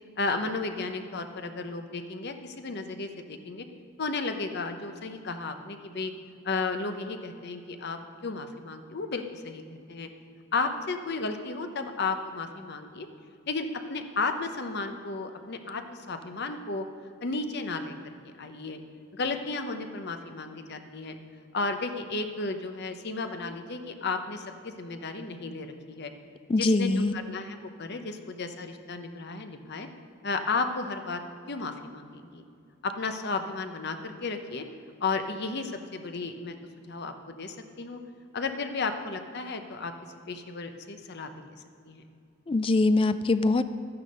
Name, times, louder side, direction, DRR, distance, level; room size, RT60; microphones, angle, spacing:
voice 1, 0.2-3.6 4.0-6.1 6.4-9.6 9.9-10.1 10.5-13.1 13.5-16.9 17.2-17.9 18.4-18.8 19.1-21.2 21.5-26.1 26.6-29.9 30.2-31.2 31.5-32.4 32.8-34.6 35.0-36.6 36.9-38.0 38.3-39.9 40.3-41.5 41.9-42.0, left 3 dB, 55° left, 7 dB, 0.9 m, -33 dB
voice 2, 26.5-27.1 42.5-43.6, left 2 dB, 25° left, 12 dB, 0.3 m, -23 dB
12.5 x 9.7 x 5.4 m, 2.4 s
head